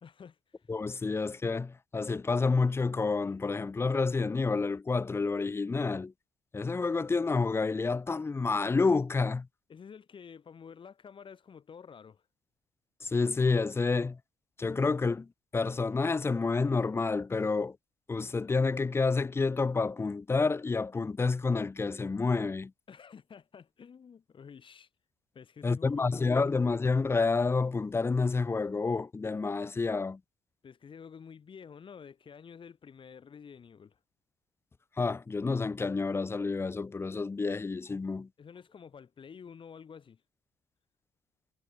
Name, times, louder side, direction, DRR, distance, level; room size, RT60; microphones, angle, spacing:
voice 1, 0.0-0.7 9.7-12.2 22.9-24.9 25.3-26.5 30.6-34.0 38.4-40.2, left 6 dB, 40° left, 2.3 m, -50 dB
voice 2, 0.7-6.1 6.5-9.5 13.0-14.2 14.6-17.8 18.1-22.7 25.6-30.2 35.0-38.3, left 4 dB, 20° left, 0.5 m, -29 dB
hypercardioid pair, 55°, 13 cm